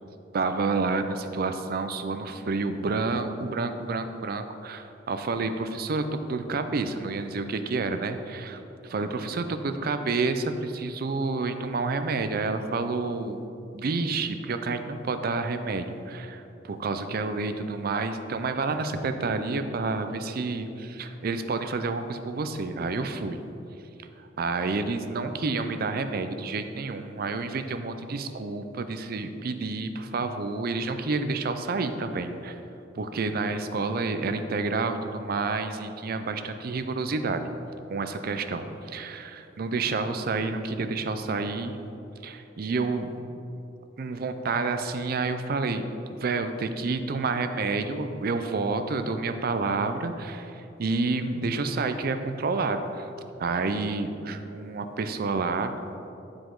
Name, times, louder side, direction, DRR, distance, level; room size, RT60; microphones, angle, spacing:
voice 1, 0.3-13.4 13.7-23.4 24.2-32.6 32.9-37.4 37.9-41.7 42.2-43.1 44.0-45.9 46.1-53.1 53.4-55.7, right 3 dB, 55° right, 9 dB, 0.5 m, -29 dB
10.5 x 4.9 x 3.8 m, 2.8 s
head